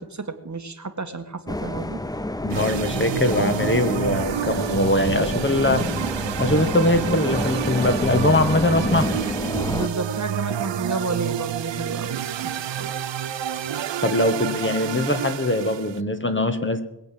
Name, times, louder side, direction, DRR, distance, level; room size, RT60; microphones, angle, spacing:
voice 1, 0.0-2.0 9.7-12.9, right 3 dB, 40° right, 8 dB, 1.6 m, -31 dB
sound 1, 1.5-9.9, left 1 dB, 10° left, 0.7 m, -29 dB
voice 2, 2.4-5.9 6.4-9.1 14.0-16.8, left 1 dB, 25° left, 8 dB, 1.7 m, -22 dB
sound 2, 2.5-16.0, right 10 dB, 80° right, 0.7 m, -29 dB
21.5 x 7.9 x 7.7 m, 0.89 s
cardioid pair, 65°, 43 cm